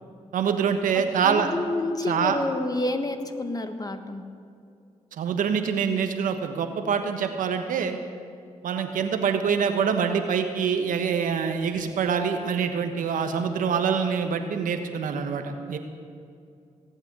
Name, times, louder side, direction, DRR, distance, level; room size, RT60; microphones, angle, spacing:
voice 1, 0.3-1.5 2.1-2.4 5.1-7.9 8.6-15.8, right 6 dB, 80° right, 6 dB, 1.2 m, -25 dB
voice 2, 1.2-4.2, left 2 dB, 25° left, 7 dB, 1.6 m, -29 dB
18.0 x 8.1 x 8.3 m, 2.4 s
supercardioid pair, 50°, 14 cm